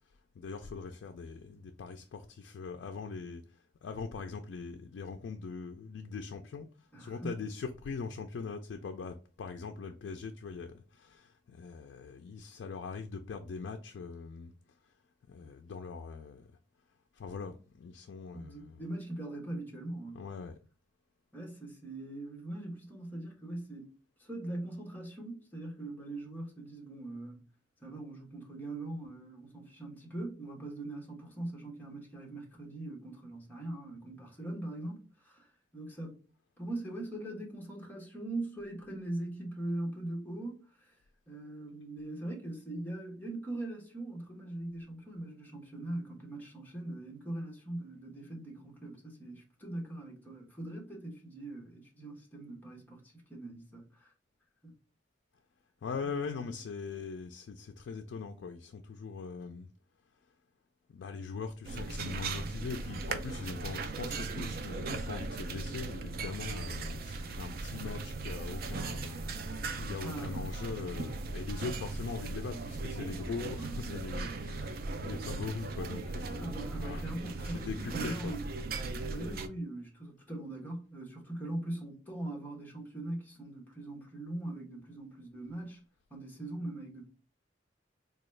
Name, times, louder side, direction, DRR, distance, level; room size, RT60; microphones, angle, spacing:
voice 1, 0.4-3.4 3.8-6.7 7.0-14.5 15.3-16.5 17.1-18.8 20.1-20.6 55.8-59.7 60.9-77.0 77.4-78.4, left 5 dB, 70° left, 0.3 m, -41 dB
voice 2, 6.9-7.4 18.3-20.2 21.3-27.5 27.8-36.2 36.6-40.9 41.3-54.1 54.6-54.7 56.0-56.6 70.0-70.6 76.3-78.5 79.0-85.8 86.1-87.1, right 1 dB, 10° left, 1.0 m, -41 dB
sound 1, 61.6-79.5, right 3 dB, 55° right, 0.4 m, -38 dB
3.8 x 2.3 x 3.1 m
head